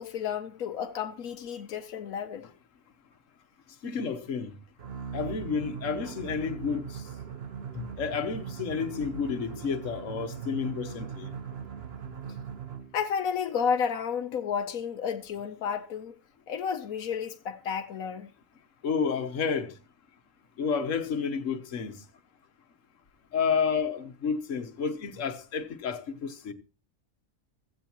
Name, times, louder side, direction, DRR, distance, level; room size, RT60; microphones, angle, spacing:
voice 1, 0.0-2.5 12.9-16.2 16.5-18.3, left 7 dB, 90° left, 1.3 m, -31 dB
voice 2, 3.8-4.5 5.1-7.0 7.7-11.3 18.8-19.8 20.6-22.0 23.3-26.5, left 6 dB, 65° left, 1.5 m, -30 dB
sound 1, 4.8-13.0, right 7 dB, 50° right, 1.1 m, -40 dB
15.5 x 15.0 x 3.0 m
omnidirectional pair, 1.4 m